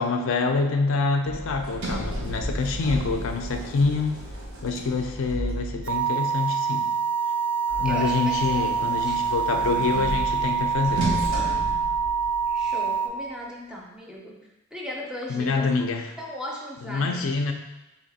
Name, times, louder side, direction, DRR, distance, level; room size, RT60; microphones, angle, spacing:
voice 1, 0.0-4.2 4.6-6.9 7.8-11.0 15.3-16.1 16.9-17.5, left 4 dB, 60° left, 5 dB, 0.4 m, -26 dB
Sliding door, 1.2-6.1 7.7-12.6, right 1 dB, 85° right, 0.9 m, -33 dB
voice 2, 4.6-4.9 7.8-9.3 12.5-14.4 14.7-15.7 16.2-17.3, equal, 5° right, -2 dB, 0.4 m, -38 dB
sound 1, 5.8-13.1, right 6 dB, 65° right, 0.4 m, -26 dB
3.2 x 2.9 x 4.0 m, 0.95 s
head